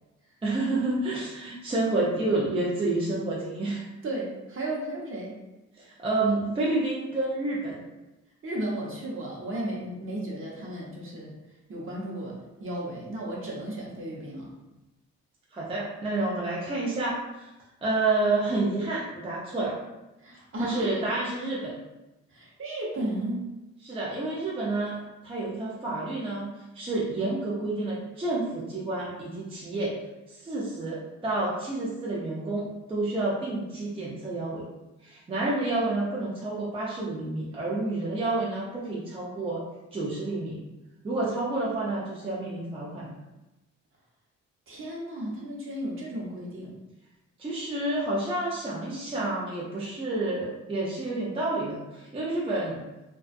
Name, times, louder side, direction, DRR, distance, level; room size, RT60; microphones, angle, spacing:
voice 1, 0.4-3.8 5.8-7.8 15.5-17.5 17.8-19.8 20.6-21.7 23.8-25.0 25.2-26.5 26.7-29.9 30.3-34.7 35.0-39.6 39.9-40.6 41.0-43.2 47.4-52.8, right 2 dB, 20° right, -6 dB, 0.5 m, -29 dB
voice 2, 4.0-5.4 8.4-11.3 11.7-14.5 20.2-21.0 22.3-23.5 44.7-46.7, right 1 dB, 45° right, -3 dB, 0.8 m, -34 dB
2.4 x 2.3 x 2.5 m, 1.0 s
cardioid pair, 90°, 30 cm